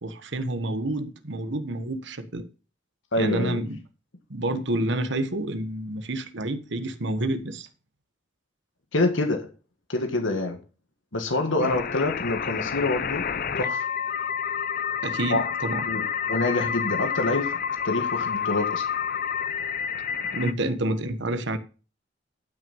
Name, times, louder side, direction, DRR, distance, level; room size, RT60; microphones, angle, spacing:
voice 1, 0.0-2.4 3.2-3.8 4.3-7.7 11.6-11.7 15.0-15.9 20.3-21.6, right 1 dB, 70° right, 1.3 m, -29 dB
voice 2, 3.1-3.6 8.9-9.5 9.9-10.6 11.1-13.3 13.5-13.9 15.3-15.4 15.8-18.9, left 2 dB, 90° left, 1.7 m, -26 dB
sound 1, 11.6-20.5, left 7 dB, 50° left, 0.7 m, -29 dB
11.5 x 6.3 x 5.4 m
head